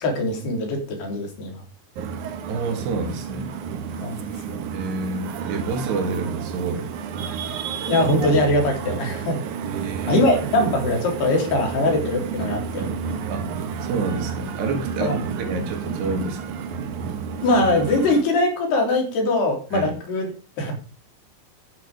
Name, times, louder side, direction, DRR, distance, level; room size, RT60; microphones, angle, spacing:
voice 1, 0.0-1.6 4.0-4.6 7.9-9.4 10.1-12.9 15.0-15.2 17.4-20.3 20.6-20.7, left 2 dB, 75° left, 2 dB, 5.8 m, -22 dB
sound 1, 2.0-18.2, right 6 dB, 60° right, 2.4 m, -31 dB
voice 2, 2.5-3.5 4.7-6.9 9.6-10.2 13.3-13.5 13.8-16.6 19.7-19.9, right 3 dB, 85° right, 3 dB, 4.6 m, -28 dB
13.0 x 11.0 x 5.2 m, 0.35 s
omnidirectional pair, 4.7 m